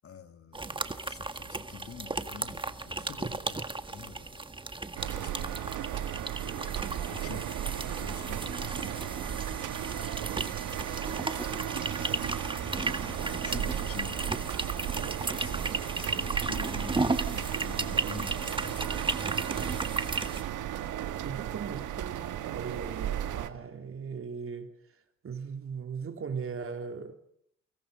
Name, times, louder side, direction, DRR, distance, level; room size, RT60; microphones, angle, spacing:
voice 1, 0.0-4.5 5.0-6.0 6.6-7.5 7.8-9.0 9.8-10.6 11.0-11.6 12.6-14.3 14.6-14.8 15.1-19.1, left 7 dB, 50° left, 2.1 m, -47 dB
sound 1, 0.5-20.4, right 3 dB, 15° right, 1.7 m, -35 dB
sound 2, 5.0-23.5, right 11 dB, 80° right, 1.8 m, -35 dB
voice 2, 21.2-27.2, right 6 dB, 45° right, 3.5 m, -39 dB
28.5 x 25.0 x 5.3 m
cardioid pair, 90°, 30 cm